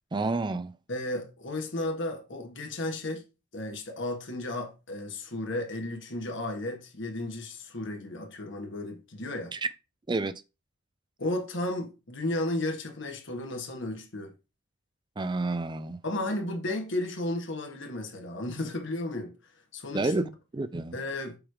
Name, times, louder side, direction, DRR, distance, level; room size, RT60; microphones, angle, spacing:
voice 1, 0.1-0.7 9.5-9.6 10.1-10.3 15.2-16.0 19.9-20.9, right 2 dB, 20° right, 0.4 m, -29 dB
voice 2, 0.9-9.6 11.2-14.3 16.0-20.3 20.9-21.4, left 1 dB, 60° left, 1.6 m, -34 dB
7.1 x 3.3 x 4.8 m
head